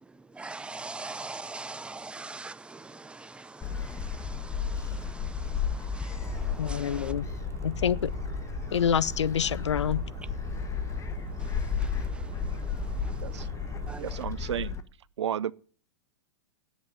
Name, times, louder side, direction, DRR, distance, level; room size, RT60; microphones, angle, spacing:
voice 1, 0.3-7.1 11.4-12.7 13.0-13.5 13.9-14.2, right 3 dB, 5° right, 0.6 m, -43 dB
Gull seagull, 3.6-14.8, left 7 dB, 20° left, 1.2 m, -34 dB
sound 1, 6.2-14.0, right 1 dB, 40° right, 2.5 m, -40 dB
voice 2, 6.6-7.3 7.6-8.1 8.7-10.1, left 8 dB, 85° left, 0.5 m, -27 dB
voice 3, 14.0-14.8 15.2-15.5, right 10 dB, 80° right, 0.5 m, -32 dB
9.6 x 8.2 x 8.5 m
hypercardioid pair, 110°, 15 cm